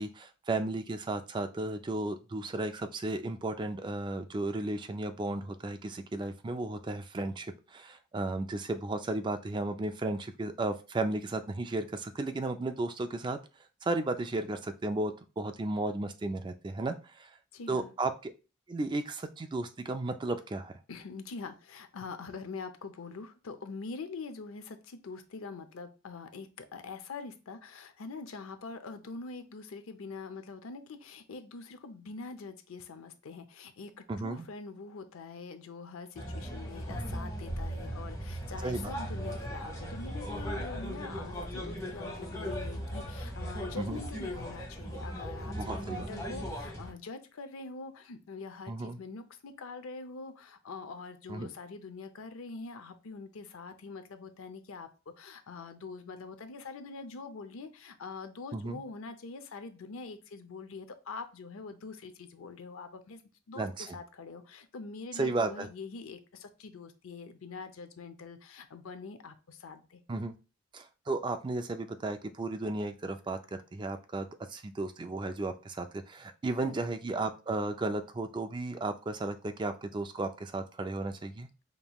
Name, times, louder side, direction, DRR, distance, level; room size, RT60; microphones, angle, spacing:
voice 1, 0.0-13.4 13.8-17.3 17.7-18.3 18.7-20.7 34.1-34.5 38.6-38.9 43.8-44.0 45.5-46.1 48.7-49.0 51.3-51.5 58.5-58.8 63.6-64.0 65.1-65.7 70.1-70.3 70.7-81.5, right 2 dB, 20° right, 8 dB, 0.3 m, -34 dB
voice 2, 17.5-17.9 20.9-54.9 55.2-63.2 63.5-70.0 76.6-76.9, left 4 dB, 85° left, 9 dB, 0.5 m, -44 dB
sound 1, 36.1-46.9, equal, 15° left, 1.2 m, -38 dB
5.2 x 2.9 x 2.3 m, 0.32 s
head